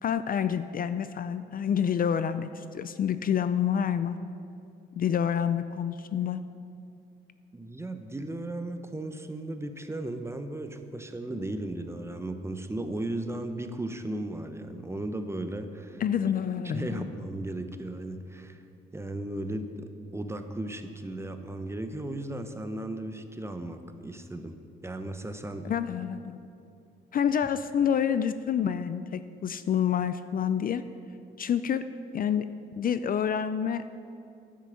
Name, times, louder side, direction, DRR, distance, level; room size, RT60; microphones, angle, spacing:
voice 1, 0.0-4.2 5.0-6.4 16.0-17.0 25.6-26.4 27.1-30.8 31.4-31.8 32.1-32.5 32.7-33.8, left 8 dB, 45° left, 12 dB, 0.4 m, -28 dB
voice 2, 7.5-16.0 16.7-18.6 18.9-24.6 24.8-25.7, right 1 dB, 15° right, 7 dB, 0.8 m, -36 dB
10.0 x 7.4 x 7.0 m, 2.5 s
cardioid pair, 90°, 20 cm